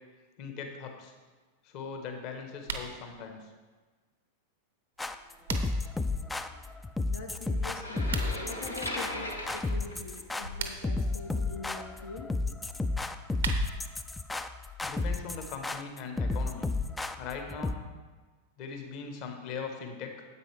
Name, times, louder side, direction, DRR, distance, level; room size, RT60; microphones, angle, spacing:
voice 1, 0.4-1.1 1.6-3.5 14.8-16.7 17.2-17.8 18.6-20.2, left 5 dB, 45° left, 4 dB, 1.2 m, -40 dB
sound 1, 2.6-2.9 5.0-5.9 8.0-8.3 10.4-11.0 13.0-14.0, right 5 dB, 65° right, 0.8 m, -38 dB
sound 2, 5.0-17.7, left 3 dB, 10° left, 0.4 m, -32 dB
voice 2, 7.1-12.3, left 3 dB, 70° left, 0 dB, 0.8 m, -43 dB
sound 3, 7.7-10.7, left 1 dB, 85° left, 1.1 m, -38 dB
9.7 x 8.1 x 3.3 m, 1.4 s
figure-of-eight pair, 90°, 0 cm